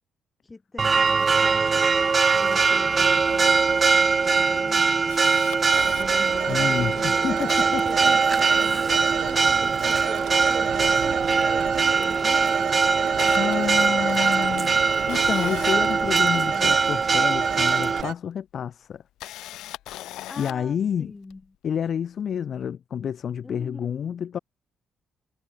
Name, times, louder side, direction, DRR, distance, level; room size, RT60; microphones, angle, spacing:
voice 1, 0.4-2.0 2.4-5.4 6.0-7.3 7.5-14.8 16.4-17.0 20.3-21.6 23.4-24.2, left 3 dB, 20° left, 3.0 m, -43 dB
Church bell, 0.8-18.0, right 4 dB, 35° right, 0.6 m, -21 dB
Camera, 4.4-6.1 6.7-6.8 7.0-8.7 9.0-10.2 10.7-11.8 12.1-12.4 12.8-16.8 17.9-18.0 18.9-20.7 21.3-21.4, left 14 dB, 90° left, 0.9 m, -41 dB
Telephone, 5.7-18.1, right 13 dB, 80° right, 1.1 m, -33 dB
voice 2, 6.5-7.8 13.4-14.8 15.1-19.0 20.4-21.1 21.6-24.4, left 8 dB, 60° left, 1.7 m, -29 dB
cardioid pair, 90°, 0 cm